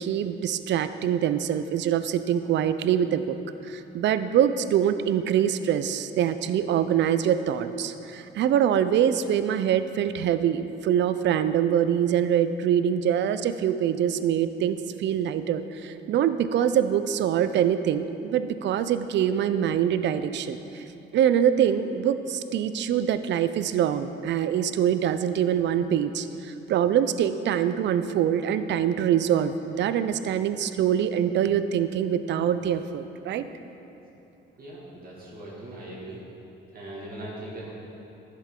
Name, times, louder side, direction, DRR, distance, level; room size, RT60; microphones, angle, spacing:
voice 1, 0.0-3.4 3.6-20.8 21.1-33.5, right 9 dB, 65° right, 12 dB, 0.4 m, -24 dB
voice 2, 34.6-36.2 36.7-37.7, right 1 dB, 45° right, -6 dB, 2.1 m, -40 dB
11.0 x 7.5 x 3.7 m, 2.9 s
cardioid pair, 90°, 20 cm